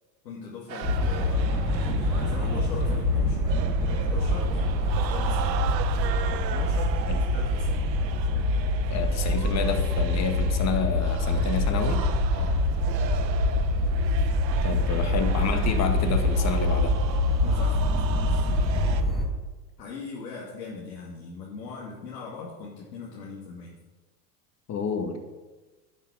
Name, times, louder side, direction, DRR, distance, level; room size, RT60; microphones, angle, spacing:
voice 1, 0.2-3.6 3.9-5.7 6.3-8.0 12.3-13.0 14.9-15.0 17.4-17.8 18.3-18.6 19.8-23.7, left 4 dB, 85° left, -4 dB, 2.2 m, -40 dB
sound 1, 0.7-19.0, right 10 dB, 80° right, 0.9 m, -38 dB
sound 2, 0.8-19.3, left 1 dB, ahead, 3.9 m, -25 dB
voice 2, 8.9-12.0 14.6-16.9 24.7-25.2, left 6 dB, 30° left, 6 dB, 1.5 m, -29 dB
11.0 x 5.8 x 6.0 m, 1.2 s
hypercardioid pair, 95°, 50 cm